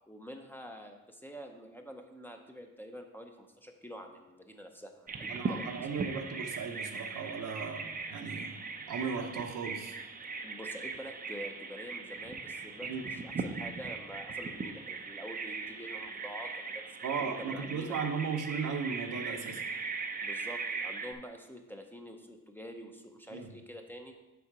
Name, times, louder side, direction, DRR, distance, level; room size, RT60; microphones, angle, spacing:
voice 1, 0.1-5.8 10.4-16.8 17.2-18.0 20.2-24.1, equal, 5° left, 4 dB, 0.6 m, -47 dB
Bird vocalization bird call bird song, 5.1-21.1, right 4 dB, 30° right, 0.5 m, -39 dB
voice 2, 5.3-8.6 8.9-10.0 12.8-13.0 17.0-19.6 23.3-23.5, right 5 dB, 85° right, 4 dB, 0.9 m, -36 dB
7.0 x 4.9 x 4.8 m, 1.0 s
cardioid pair, 120°, 30 cm